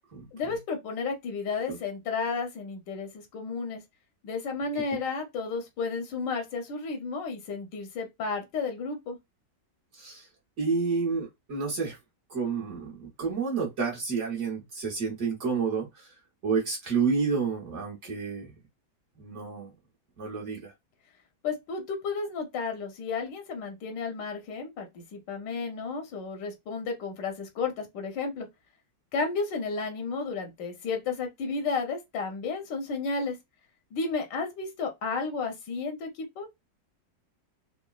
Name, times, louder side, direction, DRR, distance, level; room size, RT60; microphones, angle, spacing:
voice 1, 0.3-3.8 4.2-9.2 21.4-28.5 29.1-33.4 33.9-36.5, left 4 dB, 85° left, 1.4 m, -32 dB
voice 2, 9.9-10.3 10.6-12.0 12.3-16.1 16.4-18.5 19.2-19.7 20.2-20.7, right 5 dB, 50° right, 1.1 m, -30 dB
3.8 x 2.1 x 2.3 m
omnidirectional pair, 1.9 m